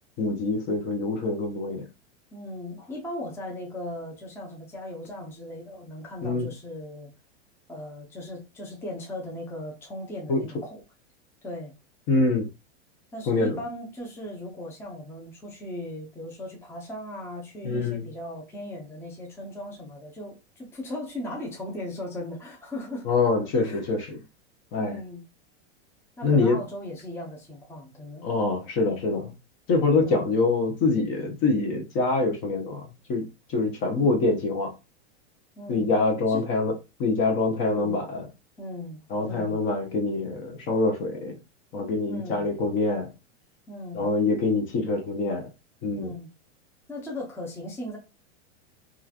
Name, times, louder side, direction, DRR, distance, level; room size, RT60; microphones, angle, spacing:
voice 1, 0.2-1.9 6.2-6.5 10.3-10.5 12.1-12.5 13.3-13.6 17.6-18.0 23.0-24.2 24.7-25.0 26.2-26.6 28.2-29.3 29.7-34.7 35.7-36.7 37.0-38.3 39.1-41.3 41.7-43.1 43.9-45.5 45.8-46.1, left 3 dB, 35° left, 0.8 m, -25 dB
voice 2, 2.3-7.1 7.7-10.8 11.4-11.7 13.1-23.1 23.6-23.9 24.8-25.2 26.2-28.3 30.0-30.3 35.6-35.9 36.3-36.4 37.7-38.1 38.6-39.6 42.1-42.5 43.7-44.0 45.9-46.3 46.9-48.0, left 1 dB, 5° left, 0.6 m, -38 dB
2.9 x 2.4 x 2.4 m
supercardioid pair, 135°, 34 cm